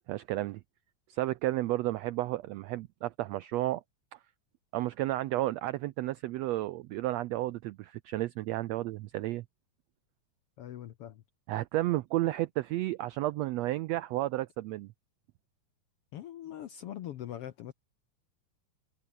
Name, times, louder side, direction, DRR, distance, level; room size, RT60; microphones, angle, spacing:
voice 1, 0.1-0.6 1.1-3.8 4.1-4.2 4.7-9.4 11.5-14.9, right 16 dB, 80° right, 1.5 m, -32 dB
voice 2, 10.6-11.2 16.1-17.7, left 11 dB, 70° left, 1.4 m, -42 dB
omnidirectional pair, 3.6 m